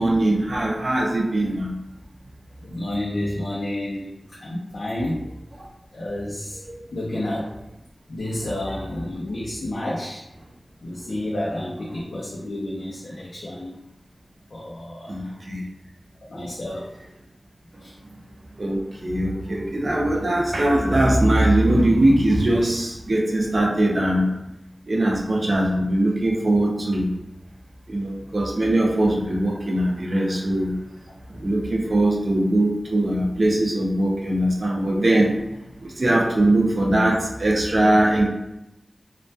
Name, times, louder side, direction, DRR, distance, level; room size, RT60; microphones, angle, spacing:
voice 1, 0.0-1.7 15.1-15.6 18.6-24.3 24.9-27.1 27.9-30.7 31.3-35.3 35.8-38.3, right 1 dB, 55° right, -1 dB, 0.4 m, -21 dB
voice 2, 2.6-5.2 5.9-6.6 6.9-7.5 8.1-10.2 10.8-13.8 14.5-15.4 16.3-16.9 17.8-17.9 31.4-31.5, left 1 dB, 80° left, -5 dB, 0.4 m, -30 dB
2.2 x 2.1 x 2.6 m, 0.89 s
wide cardioid pair, 85°, 0 cm